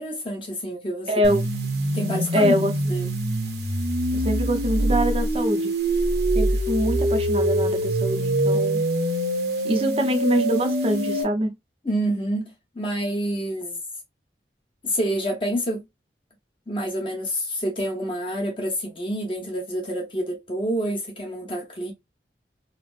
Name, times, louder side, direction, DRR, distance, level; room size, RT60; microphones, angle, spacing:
voice 1, 0.0-1.4 1.9-2.5 2.9-3.1 11.8-13.8 14.8-15.9 16.7-21.9, equal, 30° left, 0.9 m, -28 dB
voice 2, 1.1-1.5 2.3-2.7 4.1-5.7 6.3-8.8 9.6-11.5, equal, 30° right, 0.6 m, -24 dB
sound 1, 1.2-11.2, right 1 dB, 65° right, 0.8 m, -24 dB
4.1 x 2.1 x 2.4 m
head